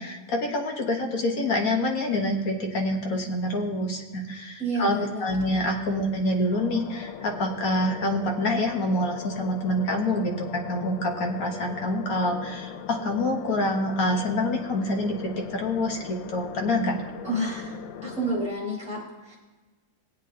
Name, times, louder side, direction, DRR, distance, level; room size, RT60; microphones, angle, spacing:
voice 1, 0.0-15.2 15.5-16.9, left 1 dB, 50° left, 2 dB, 1.4 m, -26 dB
voice 2, 4.6-5.6 17.2-17.8 18.0-19.4, right 1 dB, 5° right, -5 dB, 3.8 m, -30 dB
sound 1, 6.5-18.5, left 9 dB, 75° left, 1.3 m, -40 dB
19.0 x 8.3 x 2.8 m, 1.2 s
omnidirectional pair, 2.2 m